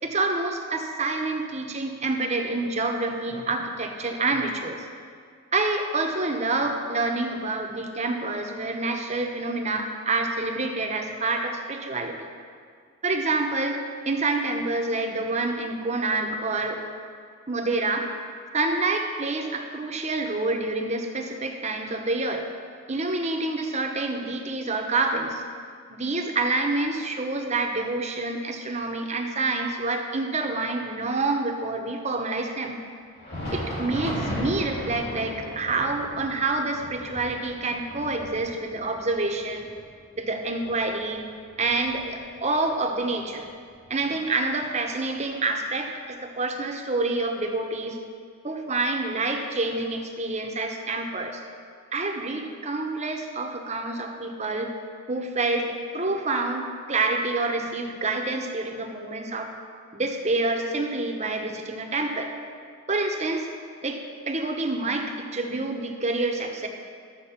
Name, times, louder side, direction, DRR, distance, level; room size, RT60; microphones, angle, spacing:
voice 1, 0.0-4.8 5.5-12.2 13.0-16.8 17.5-18.1 18.5-22.5 22.9-25.4 25.9-32.8 33.5-39.7 40.2-41.3 41.6-43.5 43.9-48.0 48.4-51.4 51.9-54.7 55.1-59.5 59.9-62.3 62.9-63.5 63.8-66.7, right 3 dB, 30° right, 3 dB, 0.9 m, -27 dB
Thunder, 33.1-42.5 42.9-43.0 43.7-43.9 44.9-45.0, equal, 45° left, 2.7 m, -36 dB
12.5 x 7.8 x 5.7 m, 2.1 s
head